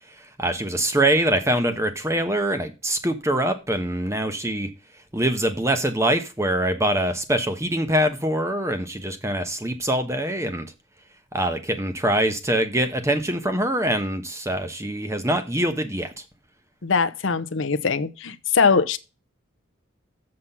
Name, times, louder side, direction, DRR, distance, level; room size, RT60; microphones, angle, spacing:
voice 1, 0.4-4.7 5.1-10.7 11.3-16.2, right 1 dB, 15° right, 1.1 m, -24 dB
voice 2, 16.8-19.0, left 5 dB, 65° left, 0.7 m, -21 dB
7.5 x 6.0 x 5.6 m
head